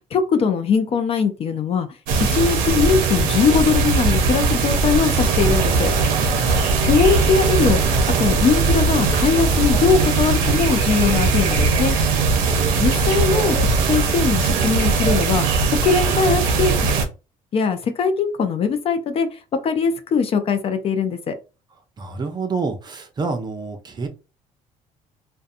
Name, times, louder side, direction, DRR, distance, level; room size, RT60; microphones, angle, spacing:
voice 1, 0.1-1.9 2.3-5.9 6.8-12.0 12.8-16.7 17.5-19.3 19.6-21.3, left 5 dB, 45° left, 0.5 m, -21 dB
sound 1, 2.1-17.1, right 4 dB, 85° right, 0.6 m, -19 dB
voice 2, 12.1-12.7 22.0-24.1, right 4 dB, 30° right, 0.6 m, -28 dB
2.6 x 2.2 x 2.5 m
cardioid pair, 100°, 14 cm